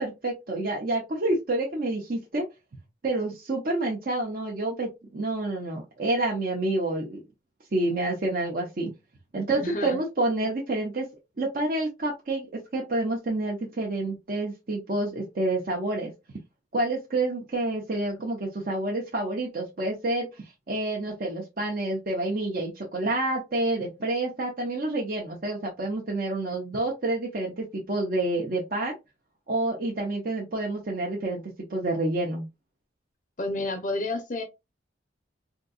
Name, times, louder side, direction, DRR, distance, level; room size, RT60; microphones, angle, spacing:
voice 1, 0.0-2.4 3.0-7.2 7.7-8.9 9.3-11.1 11.4-12.5 12.7-16.1 16.7-28.9 29.5-31.4 31.7-32.5, right 2 dB, 50° right, 0.7 m, -28 dB
voice 2, 9.6-10.0 33.4-34.4, left 2 dB, 45° left, 0.6 m, -30 dB
3.7 x 2.7 x 2.3 m
head